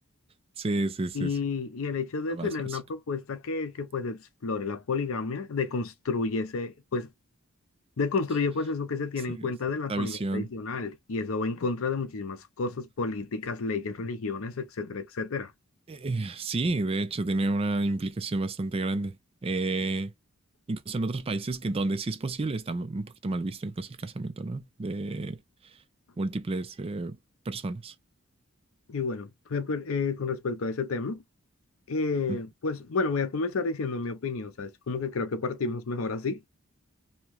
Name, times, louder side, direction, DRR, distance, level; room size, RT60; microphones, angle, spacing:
voice 1, 0.6-1.3 2.3-2.5 9.3-9.5 9.9-10.5 15.9-19.2 19.4-20.1 20.7-25.4 26.2-27.2 27.5-27.9 32.3-32.4, right 2 dB, 25° right, 0.4 m, -30 dB
voice 2, 1.1-7.1 8.0-15.5 28.9-31.2 31.9-36.4, left 4 dB, 65° left, 0.6 m, -31 dB
2.8 x 2.2 x 2.9 m
head